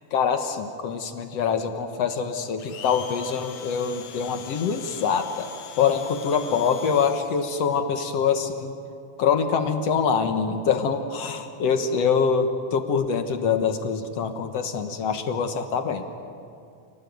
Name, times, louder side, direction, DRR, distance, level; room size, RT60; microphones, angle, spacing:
voice 1, 0.1-5.5 5.8-8.7 9.2-16.0, left 6 dB, 60° left, 7 dB, 2.0 m, -24 dB
Domestic sounds home sounds, 2.6-7.7, left 9 dB, 85° left, 2.8 m, -42 dB
28.0 x 18.5 x 9.3 m, 2.5 s
omnidirectional pair, 3.7 m